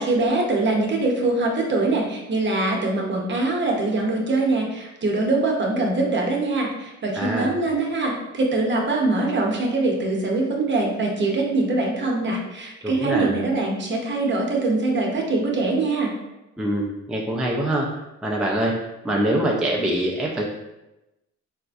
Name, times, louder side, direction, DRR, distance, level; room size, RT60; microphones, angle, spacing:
voice 1, 0.0-16.1, right 2 dB, 40° right, 0 dB, 0.8 m, -23 dB
voice 2, 7.1-7.5 12.8-13.4 16.6-17.9 18.2-18.8 19.0-20.5, right 1 dB, 5° right, -2 dB, 0.3 m, -24 dB
4.2 x 2.5 x 2.3 m, 0.97 s
cardioid pair, 90°, 30 cm